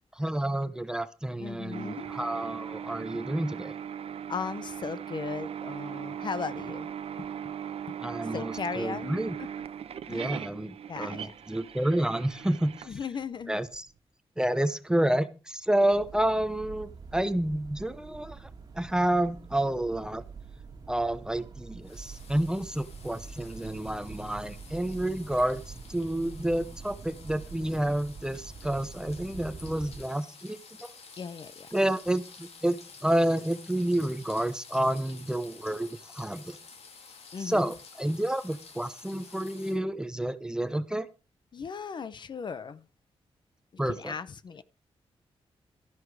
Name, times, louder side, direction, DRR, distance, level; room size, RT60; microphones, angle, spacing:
voice 1, 0.2-3.7 8.0-9.3 10.1-12.9 13.5-13.9 14.4-18.5 18.8-20.2 20.9-25.6 25.9-30.9 31.7-36.6 37.4-41.1 43.8-44.1, right 1 dB, 5° right, 0.7 m, -29 dB
voice 2, 1.3-2.1 3.1-3.2 4.3-6.9 7.2-7.3 7.9-8.0 8.3-9.5 10.1-10.5 10.9-11.3 12.9-13.6 31.2-31.7 37.3-37.7 41.5-42.8 43.9-44.6, left 6 dB, 45° left, 0.7 m, -37 dB
sound 1, 1.7-13.8, right 9 dB, 70° right, 0.8 m, -39 dB
sound 2, 15.9-30.0, right 5 dB, 35° right, 2.0 m, -46 dB
sound 3, 21.8-39.8, left 5 dB, 75° left, 2.6 m, -51 dB
13.0 x 11.0 x 4.7 m
wide cardioid pair, 180°, 11 cm